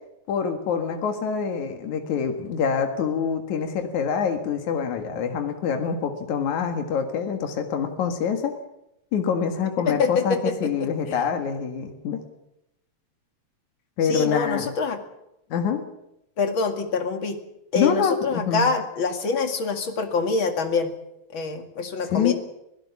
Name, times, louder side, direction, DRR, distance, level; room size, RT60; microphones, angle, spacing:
voice 1, 0.3-8.5 9.1-12.2 14.0-14.7 15.5-15.8 17.7-18.7 22.1-22.3, left 7 dB, 80° left, 5 dB, 3.2 m, -25 dB
voice 2, 9.9-11.2 14.1-15.0 16.4-17.4 17.7-20.9 21.3-22.3, left 4 dB, 45° left, 6 dB, 2.8 m, -25 dB
25.0 x 17.0 x 7.2 m, 0.85 s
omnidirectional pair, 3.3 m